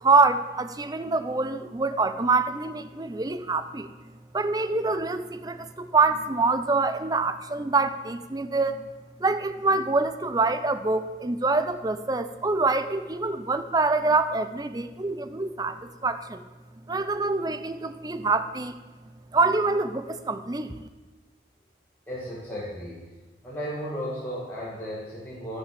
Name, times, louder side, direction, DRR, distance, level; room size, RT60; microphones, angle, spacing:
voice 1, 0.0-3.9 4.3-8.8 9.2-16.4 16.9-18.7 19.3-20.8, right 3 dB, 20° right, 11 dB, 0.5 m, -25 dB
voice 2, 22.1-23.0 23.4-25.6, equal, 10° left, -8 dB, 2.0 m, -34 dB
11.5 x 6.6 x 7.6 m, 1.3 s
head